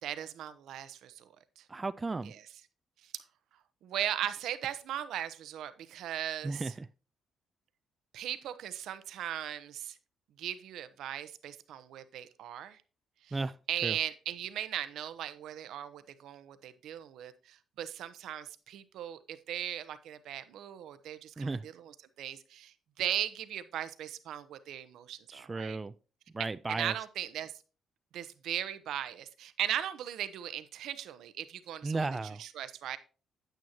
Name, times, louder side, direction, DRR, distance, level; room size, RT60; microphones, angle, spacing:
voice 1, 0.0-1.6 2.2-2.4 3.0-3.1 3.8-6.6 8.1-10.0 10.4-12.8 13.2-13.4 13.7-21.9 22.2-25.8 26.7-27.5 28.1-32.1 32.4-33.0, right 11 dB, 80° right, 0.8 m, -38 dB
voice 2, 1.7-2.3 6.4-6.9 13.3-13.6 13.8-14.0 21.4-21.6 25.3-25.9 26.3-26.9 31.8-32.4, right 3 dB, 25° right, 0.3 m, -34 dB
9.2 x 9.0 x 2.8 m
cardioid pair, 90°, 0 cm